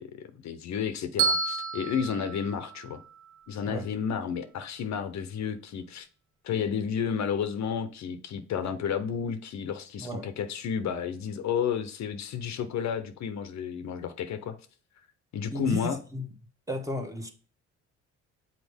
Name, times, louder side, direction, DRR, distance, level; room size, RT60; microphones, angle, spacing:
voice 1, 0.0-3.0 3.5-6.1 6.4-14.6 15.3-16.0, left 7 dB, 65° left, 0.7 m, -31 dB
Bell, 1.2-3.4, right 4 dB, 75° right, 1.4 m, -30 dB
voice 2, 15.5-16.3 16.7-17.3, left 1 dB, 10° right, 1.1 m, -34 dB
6.3 x 4.3 x 3.5 m
cardioid pair, 90°, 30 cm